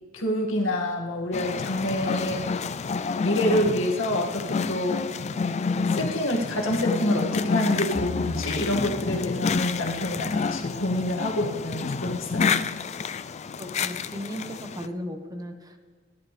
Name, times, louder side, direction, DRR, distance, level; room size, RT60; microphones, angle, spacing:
voice 1, 0.1-2.4 3.2-5.3 5.9-12.6, left 1 dB, 80° left, 0 dB, 2.0 m, -27 dB
sound 1, 1.3-14.9, left 5 dB, 35° left, 0.3 m, -29 dB
Bowed string instrument, 7.9-11.4, equal, 10° left, 3.7 m, -40 dB
voice 2, 13.6-15.8, equal, 20° right, 6 dB, 1.0 m, -36 dB
25.5 x 10.5 x 3.3 m, 1.5 s
head